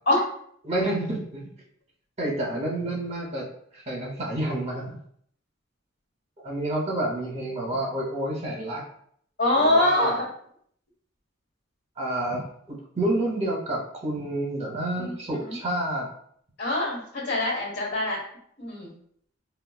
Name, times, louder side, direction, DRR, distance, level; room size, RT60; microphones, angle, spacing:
voice 1, 0.6-1.4 2.2-3.5 3.9-4.9 6.4-8.8 9.6-10.2 12.0-16.1, right 1 dB, 30° right, -3 dB, 0.8 m, -29 dB
voice 2, 9.4-10.2 15.0-15.5 16.6-18.2 18.6-18.9, left 1 dB, 55° left, -3 dB, 1.3 m, -24 dB
4.6 x 2.2 x 2.3 m, 0.65 s
head